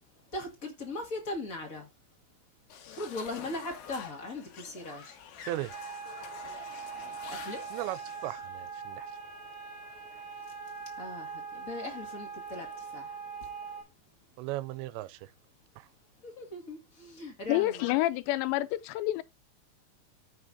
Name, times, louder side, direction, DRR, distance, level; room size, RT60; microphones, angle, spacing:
voice 1, 0.3-1.9 2.9-5.2 7.3-7.7 11.0-13.2 16.2-17.9, left 2 dB, 40° left, 1.1 m, -39 dB
sound 1, 2.7-8.4, left 7 dB, 65° left, 3.0 m, -47 dB
sound 2, 5.7-13.8, right 5 dB, 20° left, 4.9 m, -42 dB
voice 2, 7.7-9.1 14.4-15.3 15.8-15.9, right 16 dB, 85° right, 2.8 m, -37 dB
voice 3, 17.5-19.2, left 16 dB, 85° left, 2.9 m, -28 dB
14.5 x 5.6 x 2.7 m
omnidirectional pair, 5.0 m